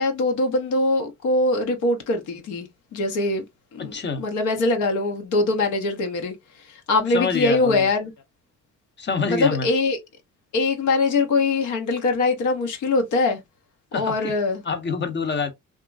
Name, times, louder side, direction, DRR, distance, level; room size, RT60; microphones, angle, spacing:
voice 1, 0.0-3.4 3.7-6.3 6.7-8.1 9.3-10.0 10.5-13.4 13.9-14.6, left 3 dB, 75° left, 0.8 m, -22 dB
voice 2, 3.8-4.2 7.1-7.9 9.0-9.7 13.9-14.3 14.6-15.5, left 5 dB, 35° left, 0.7 m, -26 dB
2.9 x 2.4 x 2.3 m
cardioid pair, 90°, 30 cm